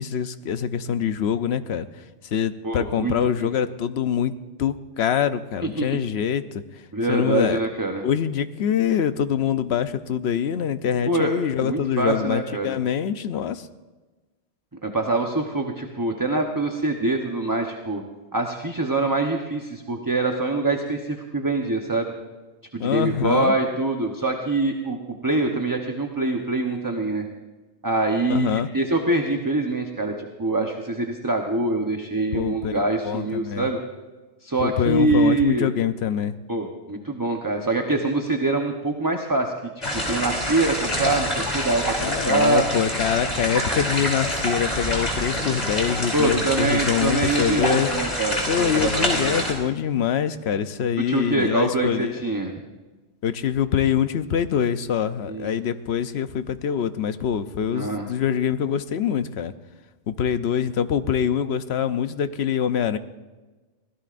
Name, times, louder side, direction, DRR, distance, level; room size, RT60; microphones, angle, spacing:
voice 1, 0.0-1.9 2.3-4.3 4.6-6.4 7.1-7.6 8.0-13.7 22.8-23.5 28.3-28.7 32.3-33.6 34.6-36.4 42.0-47.9 48.5-52.2 53.2-59.5 60.1-63.0, left 8 dB, 70° left, 11 dB, 0.9 m, -24 dB
voice 2, 2.6-3.5 5.8-5.9 6.9-8.0 11.1-12.7 14.8-18.0 18.3-22.1 22.7-25.0 25.2-27.2 27.8-33.8 34.4-35.7 36.5-42.7 46.1-49.3 51.1-52.5 55.3-55.5 57.7-58.1, right 2 dB, 20° right, 2 dB, 0.9 m, -24 dB
sound 1, 39.8-49.5, equal, 35° left, 3.4 m, -26 dB
24.0 x 17.0 x 2.5 m, 1.2 s
omnidirectional pair, 1.2 m